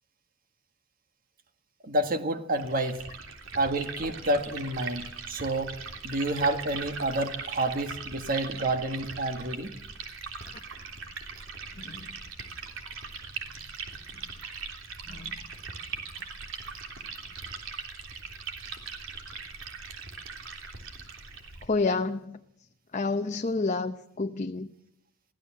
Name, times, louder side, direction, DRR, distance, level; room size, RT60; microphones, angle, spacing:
voice 1, 1.8-3.0 3.5-5.7 6.0-9.7, right 2 dB, 45° right, 7 dB, 1.6 m, -29 dB
Liquid, 2.6-21.7, right 5 dB, 75° right, 3.3 m, -40 dB
voice 2, 11.8-12.1 15.1-15.4 21.7-22.4 22.9-24.7, left 3 dB, 35° left, 6 dB, 0.8 m, -29 dB
23.5 x 16.0 x 7.4 m, 0.77 s
head